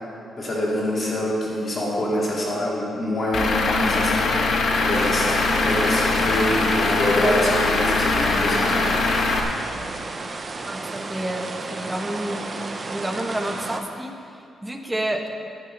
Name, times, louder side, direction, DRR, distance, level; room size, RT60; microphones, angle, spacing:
voice 1, 0.4-9.0, left 1 dB, 40° left, -4 dB, 3.0 m, -25 dB
Truck / Idling, 3.3-9.4, left 3 dB, 65° left, 1.2 m, -22 dB
sound 1, 4.9-13.8, right 3 dB, 30° right, 0.8 m, -33 dB
voice 2, 10.6-12.4 12.9-15.2, right 1 dB, 10° right, 3 dB, 1.0 m, -29 dB
10.0 x 9.9 x 5.4 m, 2.6 s
cardioid pair, 120°, 0 cm